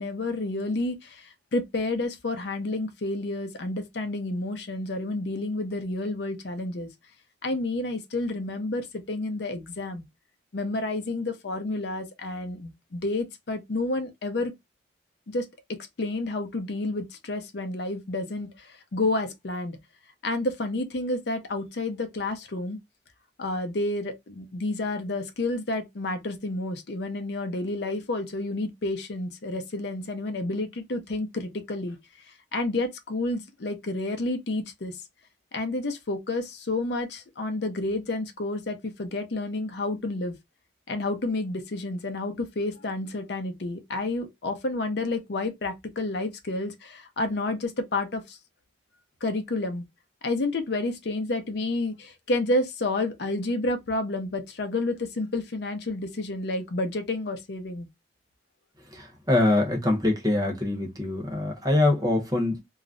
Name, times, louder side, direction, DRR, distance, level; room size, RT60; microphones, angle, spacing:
voice 1, 0.0-6.9 7.4-10.0 10.5-14.5 15.3-15.5 16.0-19.8 20.2-22.8 23.4-32.0 32.5-35.0 35.5-40.4 40.9-48.4 49.2-49.8 50.2-57.9, left 2 dB, 65° left, 0.6 m, -30 dB
voice 2, 58.9-62.6, left 2 dB, 20° right, 0.8 m, -24 dB
2.4 x 2.0 x 3.6 m
head